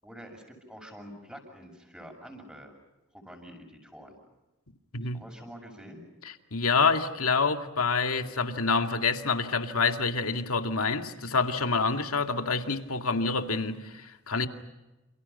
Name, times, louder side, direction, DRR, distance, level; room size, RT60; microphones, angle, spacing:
voice 1, 0.0-2.7 3.1-4.2 5.1-6.0, equal, 5° right, 7.0 m, -47 dB
voice 2, 6.5-14.5, left 4 dB, 85° left, 2.3 m, -27 dB
29.5 x 29.0 x 5.7 m
head